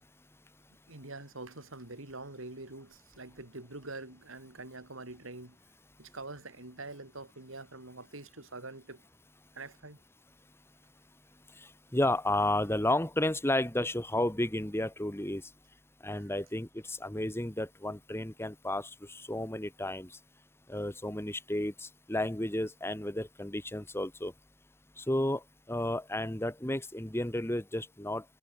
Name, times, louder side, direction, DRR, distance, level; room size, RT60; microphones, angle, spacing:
voice 1, 0.9-5.6 6.0-9.0 9.5-10.0, right 2 dB, 90° right, 4.1 m, -45 dB
voice 2, 11.9-15.4 16.0-20.1 20.7-24.3 25.0-25.4 25.7-28.2, left 1 dB, 10° left, 1.8 m, -32 dB
head